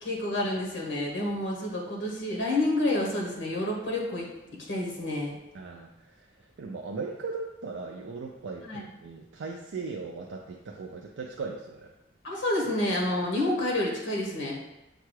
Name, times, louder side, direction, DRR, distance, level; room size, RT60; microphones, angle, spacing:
voice 1, 0.0-4.3 4.7-5.4 8.6-8.8 12.2-14.6, left 1 dB, 80° left, -2 dB, 1.0 m, -29 dB
voice 2, 5.5-11.9, right 4 dB, 75° right, 1 dB, 0.4 m, -38 dB
6.6 x 2.3 x 3.1 m, 0.97 s
head